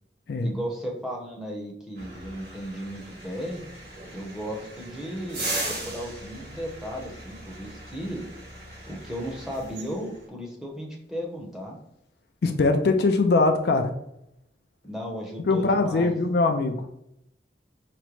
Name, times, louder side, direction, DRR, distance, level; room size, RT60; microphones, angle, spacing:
voice 1, 0.4-3.6 4.1-8.2 8.9-11.8 14.8-16.1, equal, 5° right, -1 dB, 0.7 m, -35 dB
sound 1, 1.9-10.3, right 2 dB, 55° right, 1.4 m, -38 dB
voice 2, 12.4-13.9 15.5-16.8, left 3 dB, 60° left, 6 dB, 0.4 m, -22 dB
5.0 x 2.1 x 3.0 m, 0.80 s
head